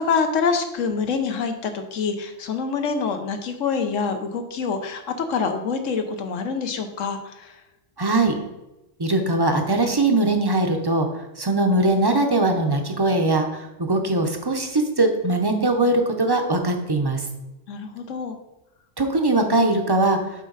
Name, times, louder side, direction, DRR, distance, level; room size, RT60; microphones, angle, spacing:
voice 1, 0.0-7.5 17.7-18.4, left 5 dB, 80° left, 6 dB, 1.2 m, -26 dB
voice 2, 8.0-8.4 9.0-11.1 11.4-17.2 19.0-20.2, right 2 dB, 25° right, 4 dB, 0.6 m, -21 dB
7.5 x 5.1 x 3.9 m, 0.97 s
omnidirectional pair, 1.3 m